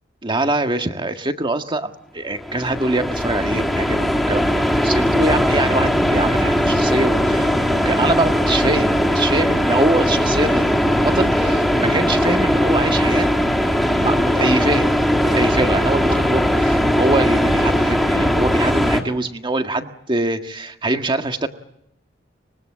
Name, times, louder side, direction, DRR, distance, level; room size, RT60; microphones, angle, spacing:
voice 1, 0.2-13.3 13.9-14.9 15.3-21.5, right 2 dB, 25° right, 6 dB, 1.7 m, -23 dB
sound 1, 2.3-19.0, equal, ahead, 2.8 m, -19 dB
24.5 x 21.5 x 8.6 m, 0.77 s
head